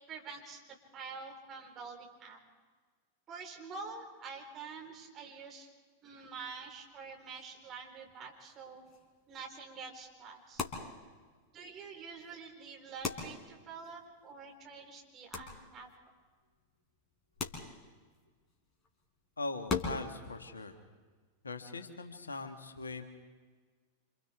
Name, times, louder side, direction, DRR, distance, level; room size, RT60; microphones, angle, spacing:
voice 1, 0.1-0.6 0.9-2.4 3.3-5.7 6.0-8.8 9.3-10.6 11.5-15.9, right 5 dB, 30° right, 0 dB, 4.3 m, -47 dB
sound 1, 6.1-20.2, left 4 dB, 20° left, 4.3 m, -44 dB
voice 2, 19.4-20.8 21.4-23.0, left 3 dB, 75° left, 6 dB, 1.7 m, -41 dB
28.0 x 27.5 x 3.6 m, 1.5 s
figure-of-eight pair, 90°, 0 cm